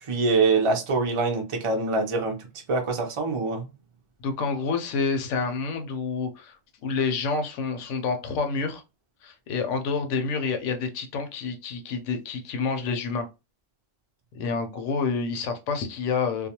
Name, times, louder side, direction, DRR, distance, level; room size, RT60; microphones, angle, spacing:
voice 1, 0.0-2.4 2.7-3.7, right 3 dB, 40° right, 0.4 m, -24 dB
voice 2, 4.2-8.8 9.2-13.3 14.3-16.5, left 4 dB, 80° left, 0.9 m, -28 dB
2.3 x 2.2 x 2.8 m
omnidirectional pair, 1.3 m